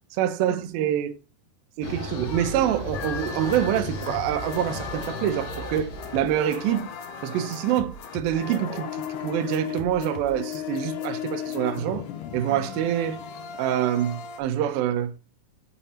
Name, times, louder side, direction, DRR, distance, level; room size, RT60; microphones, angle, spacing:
voice 1, 0.2-1.2 1.8-6.9 7.2-12.1 12.3-13.2 13.6-15.1, right 10 dB, 80° right, 2.1 m, -26 dB
sound 1, 1.8-6.8, left 2 dB, 65° left, 3.1 m, -36 dB
sound 2, 2.9-14.4, left 8 dB, 85° left, 1.8 m, -36 dB
6.8 x 3.6 x 4.1 m
omnidirectional pair, 4.7 m